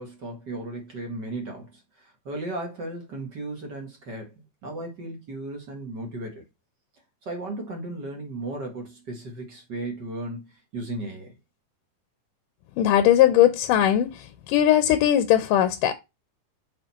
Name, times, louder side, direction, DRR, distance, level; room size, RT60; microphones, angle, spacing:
voice 1, 0.0-6.4 7.2-11.4, right 2 dB, 40° right, 2.0 m, -35 dB
voice 2, 12.8-14.1 14.5-15.9, left 11 dB, 85° left, 2.3 m, -19 dB
6.2 x 4.9 x 4.3 m
omnidirectional pair, 3.8 m